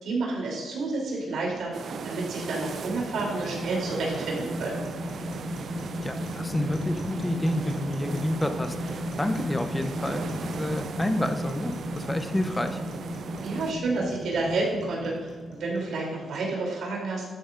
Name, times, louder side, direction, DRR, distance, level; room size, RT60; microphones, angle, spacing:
voice 1, 0.0-1.7 2.0-4.8 13.4-17.2, right 3 dB, 75° right, -2 dB, 3.2 m, -30 dB
sound 1, 1.1-16.2, equal, 60° left, 2.3 m, -36 dB
sound 2, 1.7-13.7, right 6 dB, 55° right, 0.4 m, -38 dB
voice 2, 6.0-12.8, left 1 dB, 10° left, 7 dB, 0.7 m, -29 dB
12.0 x 9.3 x 2.5 m, 1.4 s
wide cardioid pair, 150°, 0 cm